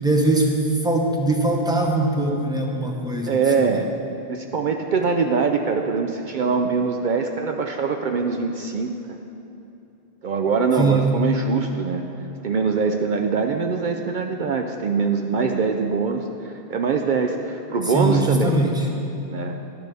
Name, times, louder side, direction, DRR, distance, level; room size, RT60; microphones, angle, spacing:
voice 1, 0.0-0.5 0.8-3.4 10.8-11.1 17.9-18.9, right 2 dB, 5° right, 0 dB, 0.9 m, -21 dB
voice 2, 3.2-3.9 4.3-9.2 10.2-12.0 12.4-18.6 19.3-19.6, right 5 dB, 60° right, 4 dB, 0.6 m, -23 dB
11.0 x 10.5 x 3.4 m, 2.9 s
omnidirectional pair, 1.0 m